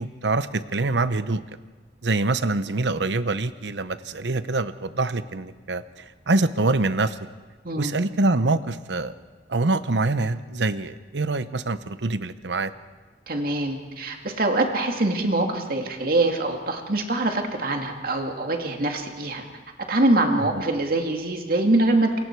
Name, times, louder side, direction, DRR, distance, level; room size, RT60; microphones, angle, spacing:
voice 1, 0.0-1.4 2.0-7.2 7.8-9.1 9.5-12.7, right 2 dB, 85° right, 13 dB, 0.9 m, -25 dB
voice 2, 13.3-19.4 19.9-22.2, right 2 dB, 55° right, 3 dB, 2.4 m, -24 dB
28.0 x 23.0 x 4.7 m, 1.3 s
head